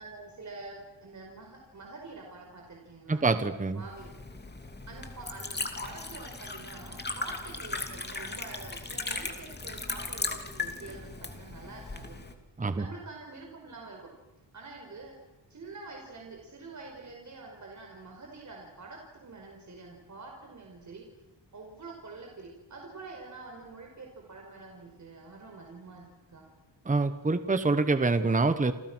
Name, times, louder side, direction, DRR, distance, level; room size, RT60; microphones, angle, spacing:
voice 1, 0.0-3.3 3.7-4.1 4.9-12.2 12.8-14.1 14.5-15.1 15.5-21.1 21.5-26.4, right 3 dB, 40° right, 0 dB, 5.1 m, -46 dB
voice 2, 3.1-3.8 12.6-12.8 26.9-28.7, right 3 dB, 15° right, 10 dB, 1.2 m, -26 dB
Liquid, 3.8-12.3, left 3 dB, 20° left, 2.7 m, -37 dB
29.5 x 28.0 x 6.3 m, 0.96 s
wide cardioid pair, 170°, 45 cm